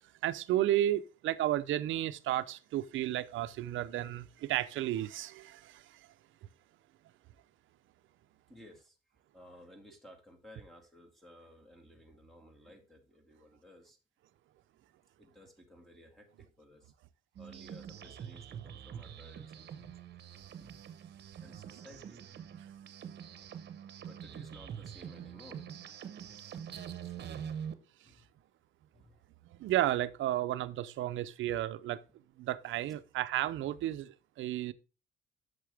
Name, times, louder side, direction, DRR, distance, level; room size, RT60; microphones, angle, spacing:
voice 1, 0.2-5.8 29.5-32.0 32.4-34.7, right 13 dB, 80° right, 0.6 m, -32 dB
voice 2, 8.5-9.0 9.3-14.0 15.2-16.9 17.4-20.0 20.6-20.8 21.4-22.5 23.4-23.5 24.1-25.7 26.1-26.3 27.0-27.3 28.1-28.2 28.9-29.2 32.9-33.0, equal, ahead, 2.1 m, -56 dB
sound 1, 17.4-27.7, right 8 dB, 60° right, 1.0 m, -45 dB
8.6 x 6.7 x 3.4 m
cardioid pair, 90°, 20 cm